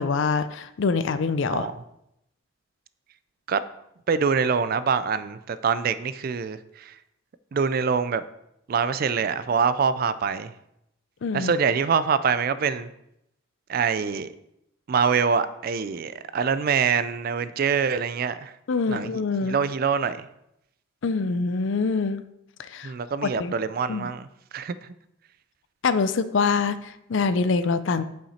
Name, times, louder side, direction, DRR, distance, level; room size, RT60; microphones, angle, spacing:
voice 1, 0.0-1.7 11.2-11.5 18.7-19.6 21.0-22.2 22.6-22.9 23.2-23.5 23.9-24.1 25.8-28.0, left 4 dB, 65° left, 13 dB, 0.5 m, -25 dB
voice 2, 4.1-6.9 7.5-8.2 8.7-10.5 11.3-12.9 13.7-14.3 14.9-18.5 18.9-19.1 19.4-20.3 22.8-24.3 24.5-24.8, right 6 dB, 50° right, 14 dB, 0.3 m, -24 dB
7.6 x 5.7 x 4.3 m, 0.82 s
head